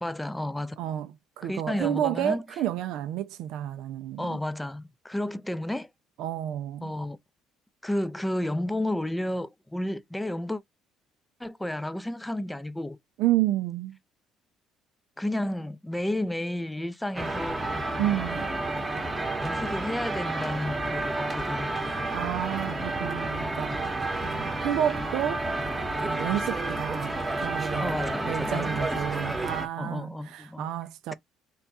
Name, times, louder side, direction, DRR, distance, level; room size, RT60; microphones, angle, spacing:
voice 1, 0.0-0.8 1.4-2.4 4.2-5.9 6.8-7.2 7.8-10.6 11.4-13.0 15.2-17.6 19.4-21.7 27.8-29.1 29.8-30.7, left 1 dB, 10° left, 0.4 m, -32 dB
voice 2, 0.8-4.4 6.2-6.9 13.2-14.0 18.0-18.5 22.1-23.8 24.2-25.4 26.0-28.0 28.2-31.1, right 12 dB, 75° right, 0.4 m, -30 dB
sound 1, 17.1-29.7, right 2 dB, 20° right, 0.9 m, -30 dB
3.4 x 2.3 x 4.0 m
supercardioid pair, 75°, 0 cm